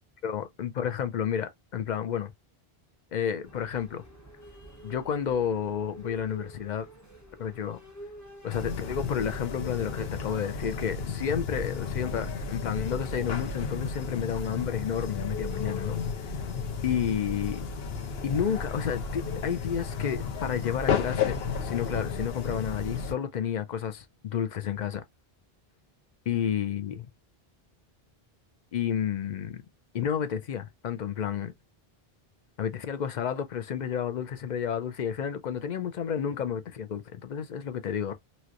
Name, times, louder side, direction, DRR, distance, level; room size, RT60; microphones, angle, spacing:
voice 1, 0.2-2.3 3.1-4.0 4.8-6.9 7.4-7.8 8.4-16.0 16.8-17.7 18.2-25.0 26.3-27.1 28.7-29.6 29.9-31.5 32.6-38.1, left 8 dB, 55° left, 0.6 m, -31 dB
sound 1, 3.4-10.2, equal, 20° left, 0.7 m, -49 dB
sound 2, 8.5-23.1, left 5 dB, 75° left, 1.0 m, -33 dB
3.1 x 2.9 x 2.4 m
omnidirectional pair, 1.0 m